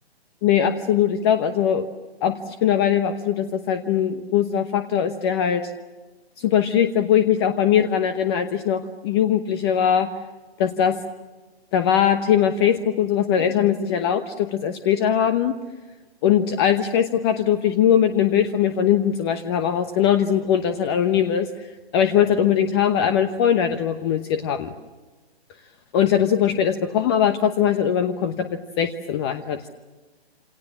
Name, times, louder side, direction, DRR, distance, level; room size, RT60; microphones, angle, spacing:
voice 1, 0.4-1.9 2.2-5.7 6.4-10.1 10.6-11.0 11.7-15.5 16.2-21.5 21.9-24.7 25.9-29.7, left 9 dB, 25° left, 9 dB, 1.0 m, -21 dB
28.0 x 28.0 x 7.2 m, 1.3 s
hypercardioid pair, 150°, 32 cm